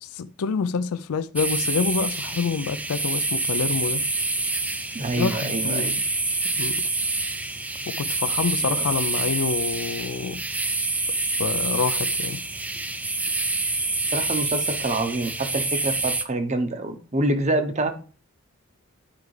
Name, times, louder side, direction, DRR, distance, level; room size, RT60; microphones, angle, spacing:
voice 1, 0.0-4.0 5.2-6.0 6.5-6.9 7.9-10.4 11.4-12.4, left 5 dB, 80° left, 0.4 m, -27 dB
sound 1, 1.4-16.2, right 2 dB, 5° right, 0.3 m, -27 dB
voice 2, 4.9-5.9 8.7-8.8 14.1-17.9, right 2 dB, 30° right, 0.8 m, -26 dB
10.5 x 4.7 x 3.2 m
head